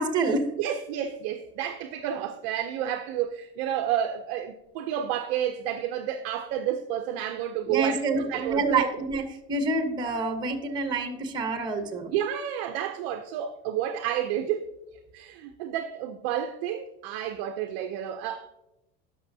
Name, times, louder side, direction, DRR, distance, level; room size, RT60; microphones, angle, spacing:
voice 1, 0.0-0.5 7.7-12.1, right 3 dB, 15° right, 0.9 m, -27 dB
voice 2, 0.6-8.9 12.1-14.7 15.1-18.5, right 10 dB, 40° right, 0.4 m, -30 dB
17.0 x 6.0 x 2.7 m
supercardioid pair, 175°, 30 cm